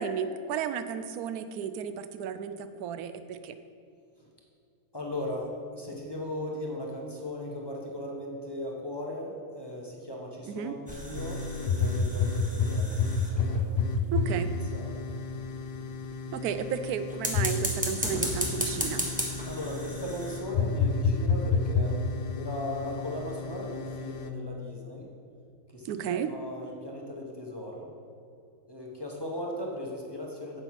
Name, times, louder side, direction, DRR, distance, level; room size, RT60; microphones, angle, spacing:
voice 1, 0.0-3.6 10.5-10.7 14.1-14.5 16.3-19.1 25.9-26.3, right 7 dB, 90° right, 11 dB, 1.1 m, -33 dB
voice 2, 4.9-12.9 13.2-14.2 14.7-15.0 16.4-16.6 19.4-25.1 25.7-27.9 28.7-30.6, left 1 dB, 20° left, -2 dB, 1.1 m, -38 dB
sound 1, 10.9-13.7 17.1-20.4, equal, 5° right, 1.1 m, -35 dB
sound 2, 11.1-24.3, left 4 dB, 65° left, 0.6 m, -30 dB
8.0 x 7.9 x 5.9 m, 2.6 s
omnidirectional pair, 1.5 m